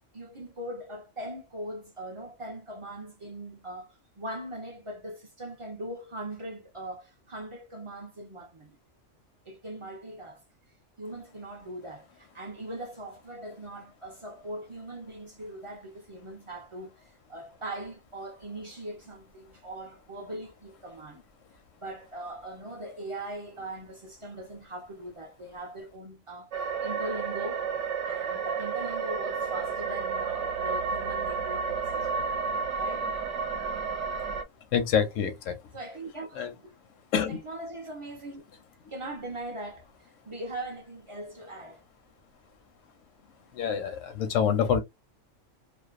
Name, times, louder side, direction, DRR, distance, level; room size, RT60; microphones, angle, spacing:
voice 1, 0.1-8.8 9.4-10.4 11.0-21.2 21.8-27.6 28.0-32.3 32.8-33.1 35.7-36.8 37.3-38.4 38.9-41.8, right 1 dB, 40° right, 0.4 m, -40 dB
sound 1, 26.5-34.4, right 5 dB, 75° right, 0.9 m, -31 dB
voice 2, 34.7-35.6 36.4-36.5 37.1-37.4 43.5-44.8, left 7 dB, 85° left, 1.0 m, -26 dB
2.5 x 2.1 x 2.3 m
omnidirectional pair, 1.3 m